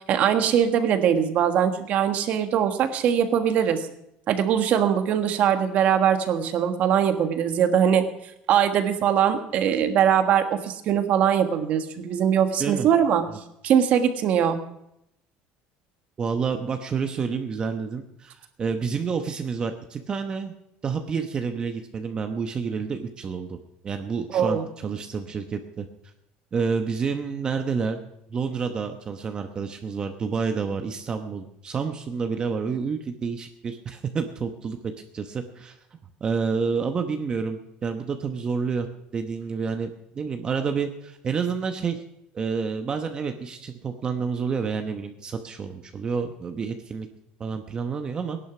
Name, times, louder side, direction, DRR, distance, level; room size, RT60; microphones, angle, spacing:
voice 1, 0.0-3.8 4.3-8.1 8.5-13.2 13.6-14.6 24.3-24.7, right 9 dB, 50° right, 7 dB, 1.5 m, -21 dB
voice 2, 16.2-20.5 20.8-23.6 23.8-25.9 26.5-28.0 28.3-38.9 39.1-39.9 40.1-42.0 42.3-47.1 47.4-48.4, right 5 dB, 25° right, 6 dB, 1.0 m, -29 dB
17.0 x 11.0 x 6.0 m, 0.80 s
cardioid pair, 135°, 3 cm